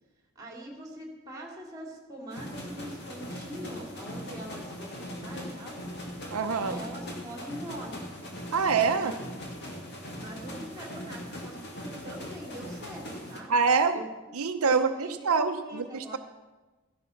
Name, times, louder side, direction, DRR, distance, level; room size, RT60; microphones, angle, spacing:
voice 1, 0.3-5.8 6.5-8.1 8.9-9.2 9.6-9.9 10.2-13.5 13.9-14.1 14.6-16.2, right 1 dB, 15° right, 0 dB, 2.6 m, -43 dB
sound 1, 2.3-13.4, equal, 50° left, 2.3 m, -40 dB
voice 2, 6.3-6.8 8.5-9.1 13.5-14.0 14.3-16.2, right 5 dB, 80° right, 7 dB, 0.7 m, -25 dB
14.0 x 11.0 x 5.8 m, 1.2 s
head